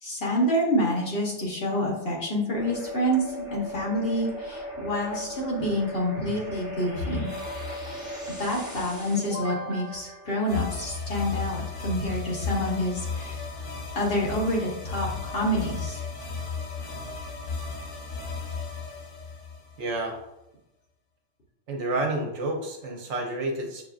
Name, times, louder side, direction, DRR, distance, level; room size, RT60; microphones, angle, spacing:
voice 1, 0.0-7.3 7.9-8.0 8.4-13.4 13.9-16.0, equal, 55° left, -4 dB, 1.3 m, -28 dB
sound 1, 2.6-11.2, equal, 5° right, 0.8 m, -38 dB
sound 2, 7.0-8.8 10.5-20.2, left 4 dB, 90° left, 1.2 m, -35 dB
voice 2, 19.8-20.2 21.7-23.8, right 2 dB, 75° right, 1 dB, 1.1 m, -29 dB
6.4 x 2.4 x 2.4 m, 0.89 s
omnidirectional pair, 1.2 m